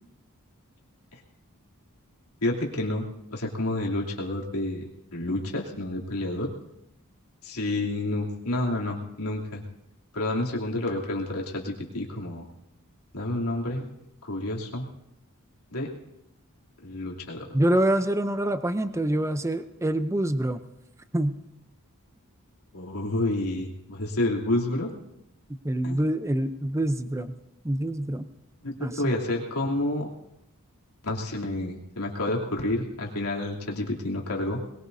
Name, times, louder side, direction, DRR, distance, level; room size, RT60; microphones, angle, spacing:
voice 1, 2.4-3.0 3.3-6.5 7.4-9.6 10.1-12.5 13.1-13.8 14.2-14.9 15.7-15.9 16.8-17.5 22.7-24.9 25.8-26.0 28.6-30.1 31.0-34.6, left 1 dB, 90° left, -2 dB, 3.1 m, -29 dB
voice 2, 17.5-20.6 21.1-21.4 25.6-27.3 27.6-28.3 28.8-28.9, right 1 dB, 15° right, 10 dB, 0.6 m, -25 dB
21.5 x 21.5 x 2.7 m, 0.85 s
head